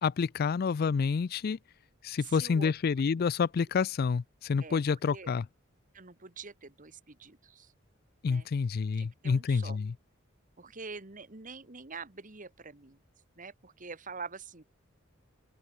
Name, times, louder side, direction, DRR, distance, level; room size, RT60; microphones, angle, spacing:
voice 1, 0.0-1.6 2.0-5.5 8.2-9.9, left 5 dB, 45° left, 0.4 m, -28 dB
voice 2, 2.2-2.7 4.6-4.8 5.1-5.3 5.9-7.7 8.3-8.5 9.0-9.8 10.6-13.0 13.4-14.6, right 4 dB, 40° right, 1.8 m, -45 dB
open air
head